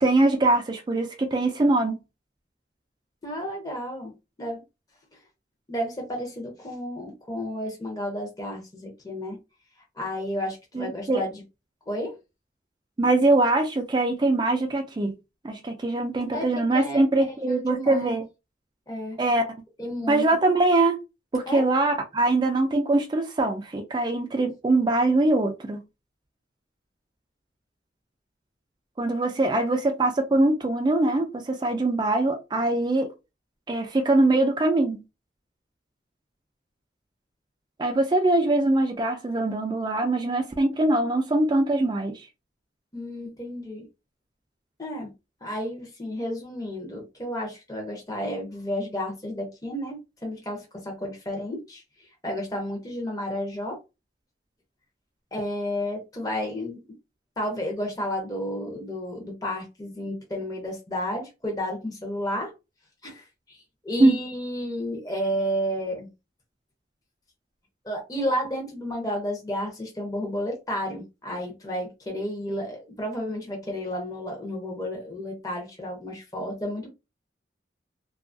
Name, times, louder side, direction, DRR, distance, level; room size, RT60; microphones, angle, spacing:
voice 1, 0.0-2.0 10.7-11.2 13.0-15.1 15.4-18.2 19.2-19.4 20.1-21.0 21.3-25.8 29.0-33.1 33.7-35.0 37.8-42.2 64.0-64.2, right 2 dB, 25° right, 0.3 m, -22 dB
voice 2, 3.2-4.1 4.4-4.6 5.7-9.4 10.0-11.4 11.9-12.1 16.3-16.5 16.7-18.2 18.9-19.2 19.8-20.2 21.5-21.6 42.9-43.9 44.8-45.1 45.4-51.8 52.2-53.8 55.3-56.8 57.4-62.5 63.0-63.6 63.8-66.1 67.8-76.9, equal, 20° left, 0.6 m, -32 dB
2.7 x 2.3 x 2.5 m
head